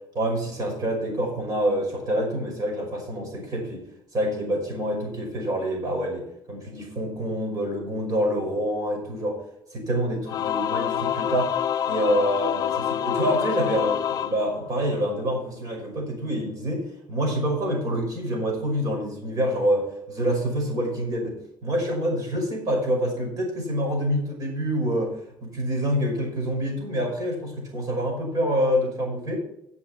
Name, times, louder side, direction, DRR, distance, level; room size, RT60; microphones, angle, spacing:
voice 1, 0.1-3.8 4.1-9.4 9.7-11.6 11.9-29.4, equal, 45° right, 1 dB, 5.5 m, -26 dB
Singing / Musical instrument, 10.3-15.1, left 10 dB, 45° left, 0.4 m, -27 dB
11.5 x 7.2 x 5.9 m, 0.74 s
cardioid pair, 170°, 9 cm